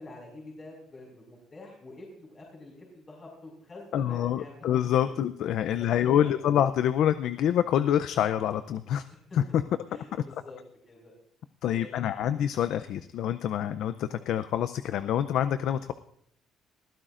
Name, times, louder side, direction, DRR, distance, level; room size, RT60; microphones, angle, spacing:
voice 1, 0.0-4.6 5.0-5.1 5.7-6.5 9.1-9.4 9.9-10.6 10.9-11.1 11.7-12.2 14.2-14.3, left 2 dB, 35° left, -2 dB, 5.3 m, -47 dB
voice 2, 3.9-9.0 9.5-9.6 11.6-15.9, left 10 dB, 70° left, 12 dB, 0.5 m, -26 dB
21.5 x 15.0 x 2.5 m, 0.71 s
cardioid pair, 110°, 0 cm